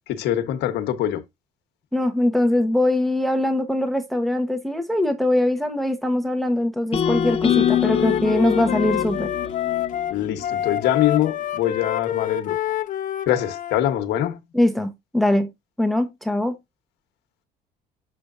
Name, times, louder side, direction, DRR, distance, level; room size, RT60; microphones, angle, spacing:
voice 1, 0.1-1.2 10.1-12.6 13.3-14.4, left 11 dB, 80° left, 1.2 m, -23 dB
voice 2, 1.9-9.3 14.5-15.5 15.8-16.6, left 1 dB, ahead, 0.9 m, -22 dB
sound 1, 6.9-11.1, left 9 dB, 35° left, 1.0 m, -25 dB
Wind instrument woodwind instrument, 7.0-13.8, left 11 dB, 50° left, 0.7 m, -27 dB
6.8 x 6.2 x 2.5 m
cardioid pair, 110°, 17 cm